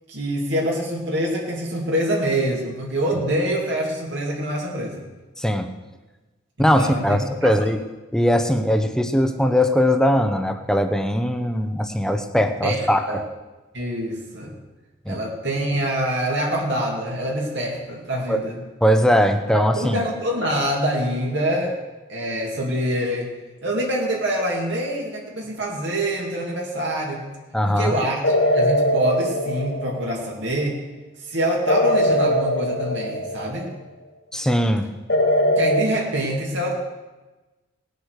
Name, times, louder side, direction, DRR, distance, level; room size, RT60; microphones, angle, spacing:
voice 1, 0.1-5.0 6.6-7.5 12.6-13.2 13.7-14.5 15.1-18.6 19.5-21.8 22.1-23.3 23.6-27.3 27.7-30.8 31.2-33.7 35.5-36.7, right 1 dB, 65° right, -2 dB, 2.7 m, -25 dB
voice 2, 5.4-5.7 6.6-7.8 8.1-13.2 15.1-15.2 18.3-18.4 18.8-20.0 27.5-27.9 34.3-34.9, equal, 5° left, 7 dB, 0.8 m, -20 dB
sound 1, 28.2-30.3 31.7-33.7 35.1-35.8, equal, 60° left, 2.0 m, -21 dB
18.5 x 8.2 x 6.6 m, 1.2 s
head